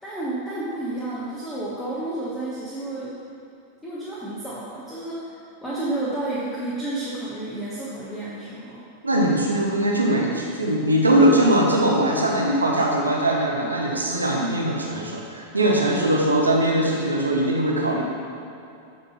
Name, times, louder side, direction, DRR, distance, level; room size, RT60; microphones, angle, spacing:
voice 1, 0.0-3.1 3.8-5.3 5.6-8.8, right 2 dB, 5° left, -9 dB, 1.2 m, -31 dB
voice 2, 9.0-18.0, right 1 dB, 80° right, -1 dB, 0.9 m, -21 dB
8.4 x 4.0 x 4.2 m, 2.6 s
figure-of-eight pair, 90°, 0 cm